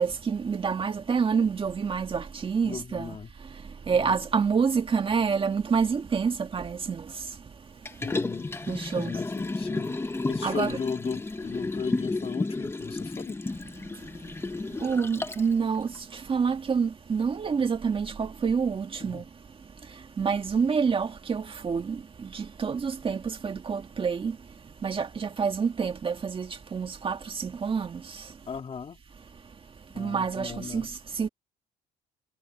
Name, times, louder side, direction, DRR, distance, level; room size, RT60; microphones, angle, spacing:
voice 1, 0.0-3.2 3.5-7.4 8.7-9.1 10.4-10.8 14.8-19.2 19.9-24.4 24.8-28.3 30.0-31.3, right 6 dB, 30° right, 1.9 m, -28 dB
voice 2, 2.6-3.3 3.9-4.2 8.0-8.5 8.9-10.0 10.3-13.4 19.0-19.2 28.5-29.0 29.9-30.9, left 6 dB, 35° left, 3.4 m, -36 dB
Liquid, 7.9-15.5 16.0-16.1, left 3 dB, 15° left, 1.4 m, -32 dB
cardioid pair, 110°, 17 cm